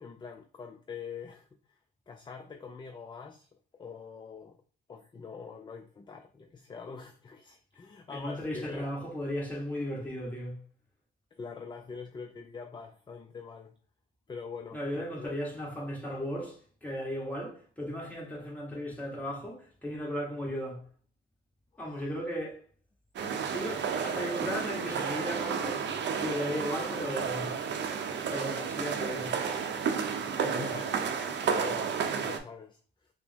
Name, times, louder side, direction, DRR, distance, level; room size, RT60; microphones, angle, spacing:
voice 1, 0.0-1.5 2.1-3.5 3.8-4.6 4.9-8.8 11.3-13.8 14.3-15.4 21.7-22.1 30.4-33.1, left 5 dB, 25° left, 0.4 m, -44 dB
voice 2, 8.1-10.6 14.7-20.9 21.8-22.6 23.5-25.8 26.2-27.6 28.3-29.4, equal, 10° left, 1.5 m, -36 dB
sound 1, 23.2-32.4, right 6 dB, 60° right, 0.6 m, -32 dB
4.9 x 2.1 x 3.5 m
cardioid pair, 90°, 20 cm